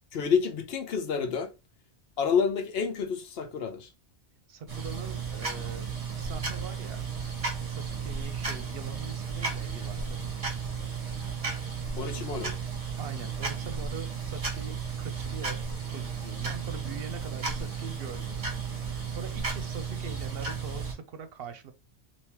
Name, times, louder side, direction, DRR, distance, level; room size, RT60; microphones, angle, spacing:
voice 1, 0.1-1.5 2.2-3.9 12.0-12.5, left 6 dB, 65° left, 0.9 m, -28 dB
voice 2, 4.5-7.0 7.6-10.4 13.0-15.6 15.9-21.7, right 6 dB, 65° right, 0.8 m, -42 dB
sound 1, 4.7-20.9, right 5 dB, 35° right, 1.0 m, -34 dB
3.4 x 2.8 x 2.9 m
omnidirectional pair, 1.1 m